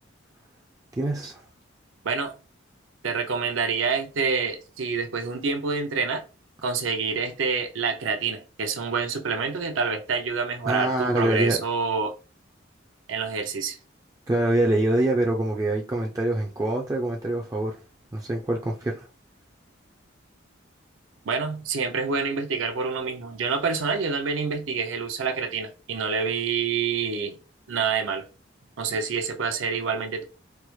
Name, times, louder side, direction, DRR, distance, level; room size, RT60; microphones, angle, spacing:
voice 1, 1.0-1.4 10.7-11.6 14.3-17.8 18.1-19.0, right 1 dB, 15° right, 0.3 m, -25 dB
voice 2, 2.0-2.4 3.0-6.2 6.6-12.2 13.1-13.8 21.3-27.4 27.7-28.3 28.8-30.2, right 5 dB, 80° right, 0.6 m, -27 dB
4.4 x 2.0 x 3.1 m
head